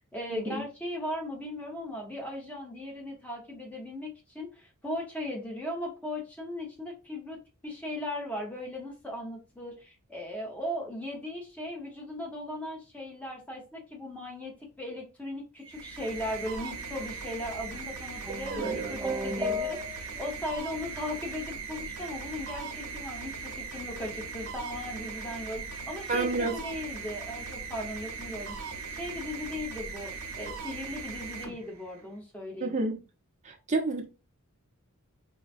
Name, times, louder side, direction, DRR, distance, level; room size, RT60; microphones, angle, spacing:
voice 1, 0.0-32.7, left 1 dB, 5° left, 0.9 m, -38 dB
sound 1, 15.6-32.1, right 5 dB, 90° right, 0.8 m, -39 dB
sound 2, 18.2-20.3, left 1 dB, 10° right, 0.3 m, -33 dB
voice 2, 18.5-19.0 26.1-26.5 32.6-33.0 33.4-34.0, right 3 dB, 35° right, 0.7 m, -29 dB
3.9 x 2.2 x 2.5 m
head